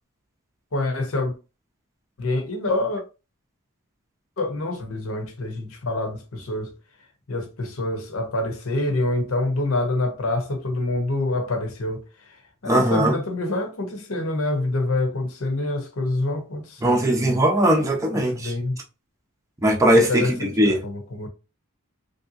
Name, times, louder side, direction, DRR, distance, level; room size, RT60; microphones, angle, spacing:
voice 1, 0.7-1.3 2.2-3.0 4.4-6.7 7.3-12.0 12.6-17.4 18.1-18.8 19.9-21.3, left 2 dB, 65° left, 0.9 m, -26 dB
voice 2, 12.6-13.2 16.8-18.5 19.6-20.8, right 1 dB, 15° right, 0.6 m, -19 dB
3.4 x 2.7 x 2.7 m
head